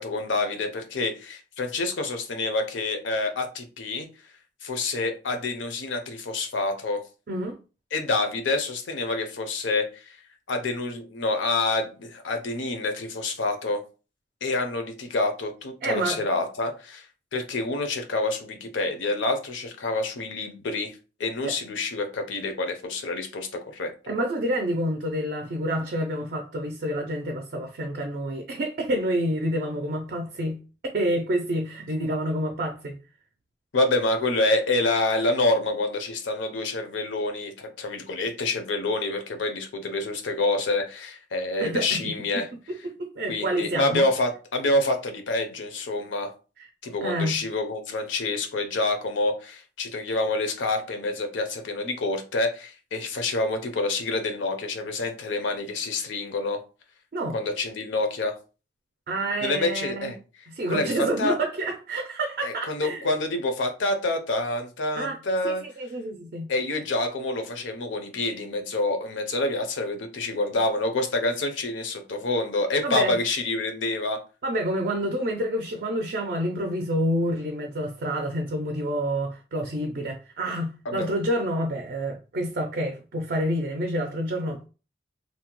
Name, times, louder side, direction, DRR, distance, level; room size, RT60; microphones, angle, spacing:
voice 1, 0.0-4.1 4.6-7.0 7.9-10.2 10.5-13.8 14.4-17.1 17.3-23.9 33.7-42.5 43.3-46.3 46.8-56.6 57.3-58.4 59.4-60.2 60.7-61.4 62.4-65.6 66.5-74.2 80.9-81.1, left 2 dB, 85° left, 0.6 m, -27 dB
voice 2, 15.8-16.2 21.4-21.5 24.1-30.6 30.9-33.0 41.6-42.1 43.0-44.1 46.6-46.7 47.0-47.4 57.1-57.4 59.1-60.1 60.5-63.0 65.0-65.2 65.4-66.5 72.8-73.1 74.4-84.7, right 1 dB, 50° right, 0.4 m, -28 dB
2.7 x 2.1 x 2.9 m
head